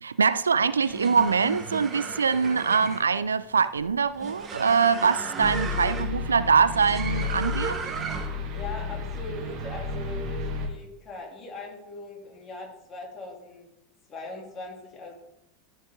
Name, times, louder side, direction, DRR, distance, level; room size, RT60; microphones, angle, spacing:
voice 1, 0.0-7.8, right 5 dB, 80° right, 0.3 m, -23 dB
sound 1, 0.7-8.5, right 5 dB, 30° right, 1.4 m, -36 dB
sound 2, 5.4-10.7, left 3 dB, 45° right, 1.7 m, -32 dB
voice 2, 8.5-13.7 14.1-15.1, left 3 dB, 30° left, 3.1 m, -40 dB
13.5 x 5.3 x 3.8 m
figure-of-eight pair, 80°, 0 cm